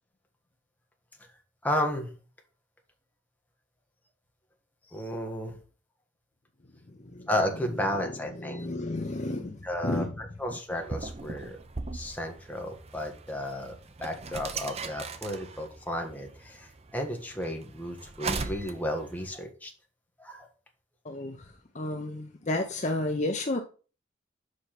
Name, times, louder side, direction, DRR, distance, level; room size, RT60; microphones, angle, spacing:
voice 1, 1.6-2.1 4.9-5.6 7.3-8.7 9.6-11.6 11.9-13.7 14.0-19.7 20.2-20.5, left 1 dB, 10° left, 1.4 m, -33 dB
voice 2, 6.9-7.3 7.9-10.1 10.5-10.6 21.0-23.6, left 2 dB, 35° left, 0.7 m, -32 dB
sound 1, 10.7-19.3, right 4 dB, 30° right, 0.6 m, -39 dB
5.5 x 5.1 x 5.8 m
head